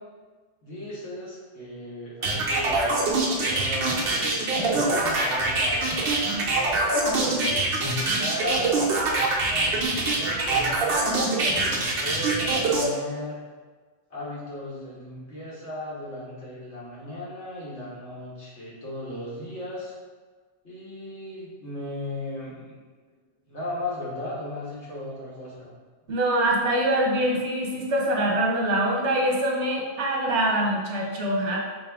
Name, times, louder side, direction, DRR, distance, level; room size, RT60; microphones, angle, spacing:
voice 1, 0.6-3.0 3.3-8.7 9.5-13.4 14.1-19.9 20.6-22.8 23.5-25.7, left 1 dB, 80° left, -7 dB, 1.7 m, -36 dB
sound 1, 2.2-12.9, right 2 dB, 60° right, 0.9 m, -24 dB
voice 2, 26.1-31.6, right 1 dB, 85° right, -2 dB, 1.2 m, -24 dB
4.1 x 3.1 x 3.4 m, 1.4 s
omnidirectional pair, 1.1 m